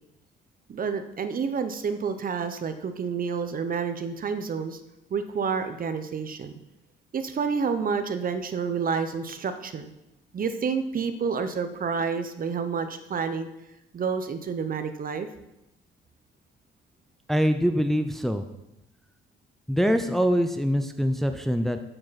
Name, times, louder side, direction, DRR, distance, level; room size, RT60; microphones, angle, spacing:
voice 1, 0.7-4.8 5.1-6.5 7.1-9.9 10.3-13.5 13.9-15.3, right 5 dB, 45° right, 9 dB, 0.9 m, -29 dB
voice 2, 17.3-18.5 19.7-21.8, equal, ahead, 7 dB, 0.6 m, -24 dB
8.7 x 7.8 x 4.2 m, 0.89 s
cardioid pair, 90°, 20 cm